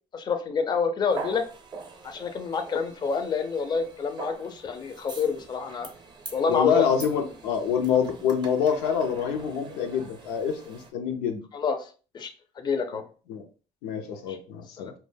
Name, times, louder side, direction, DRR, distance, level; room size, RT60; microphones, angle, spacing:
voice 1, 0.1-1.4 2.0-5.9 6.3-6.9 11.5-11.9 12.1-12.3 12.6-13.0 14.3-14.4 14.8-14.9, left 5 dB, 25° left, 7 dB, 0.4 m, -27 dB
sound 1, 1.1-10.9, right 4 dB, 25° right, 0.6 m, -43 dB
voice 2, 6.5-11.4 12.9-13.0 13.3-13.4 13.8-14.9, left 7 dB, 85° left, 5 dB, 0.5 m, -26 dB
2.1 x 2.1 x 3.2 m, 0.37 s
cardioid pair, 100°, 17 cm